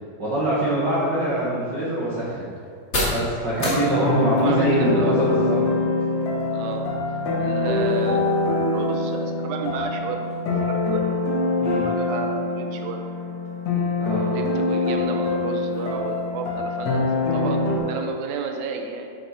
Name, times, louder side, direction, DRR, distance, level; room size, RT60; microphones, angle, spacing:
voice 1, 0.2-2.5 3.1-5.6 11.6-11.9 14.0-14.3, right 1 dB, 60° right, -9 dB, 1.1 m, -24 dB
sound 1, 0.8-18.4, left 1 dB, 30° left, 1.3 m, -38 dB
sound 2, 3.6-17.8, left 3 dB, 60° left, 2.0 m, -24 dB
voice 2, 3.6-4.1 4.4-4.7 4.9-5.3 6.5-8.3 8.7-10.3 10.7-11.6 11.9-13.0 14.3-19.1, right 5 dB, 80° right, 3 dB, 1.7 m, -32 dB
9.1 x 6.3 x 4.4 m, 2.1 s
omnidirectional pair, 4.2 m